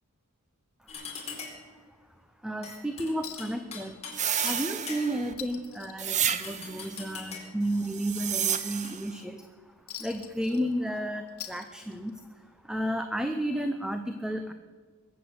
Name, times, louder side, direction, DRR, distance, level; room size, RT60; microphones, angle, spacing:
sound 1, 0.9-1.7 2.6-4.2 4.5-5.3 6.3-7.6 8.5-8.9, left 5 dB, 30° left, 4.0 m, -42 dB
voice 1, 2.4-4.0 4.4-9.4 10.0-12.2 12.7-14.5, equal, 5° right, 7 dB, 0.7 m, -32 dB
Chink clink, 3.2-3.6 3.9-4.0 4.4-4.8 5.1-6.8 7.2-7.3 7.8-9.2 9.9-11.0 11.3-12.2 13.3-13.4, left 10 dB, 75° left, 2.0 m, -44 dB
sound 2, 4.1-5.3 6.0-6.9 7.8-9.1, right 9 dB, 35° right, 0.8 m, -30 dB
22.0 x 8.1 x 8.0 m, 1.5 s
head